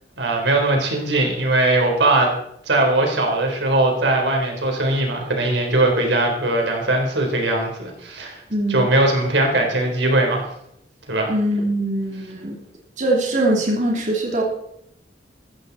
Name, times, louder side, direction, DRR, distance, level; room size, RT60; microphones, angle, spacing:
voice 1, 0.2-2.3 2.7-8.4 8.7-10.5 11.1-11.3, right 2 dB, 80° right, 1 dB, 4.0 m, -20 dB
voice 2, 8.5-8.9 11.3-12.6 13.0-14.4, right 1 dB, 45° right, -2 dB, 3.0 m, -22 dB
15.0 x 14.5 x 4.2 m, 0.76 s
head